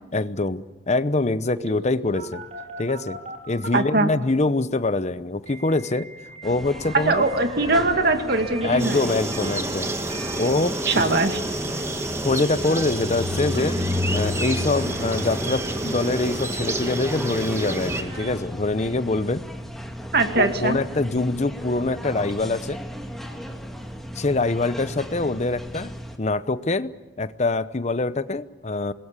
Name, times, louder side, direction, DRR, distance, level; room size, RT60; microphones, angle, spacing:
voice 1, 0.1-2.4 2.8-3.2 3.5-6.1 6.4-7.3 8.6-11.1 12.2-13.8 14.1-19.4 20.4-22.8 24.1-28.9, left 2 dB, 40° left, 14 dB, 0.9 m, -24 dB
Telephone, 1.6-4.0 5.5-18.3, right 2 dB, 40° right, 4.8 m, -41 dB
voice 2, 3.7-4.1 6.9-9.0 10.9-11.4 20.1-20.8, right 2 dB, 65° right, 6 dB, 2.2 m, -21 dB
sound 1, 6.4-26.2, left 1 dB, ahead, 2.2 m, -34 dB
sound 2, 8.8-18.0, right 1 dB, 15° right, 1.6 m, -29 dB
26.0 x 21.0 x 8.4 m, 1.1 s
head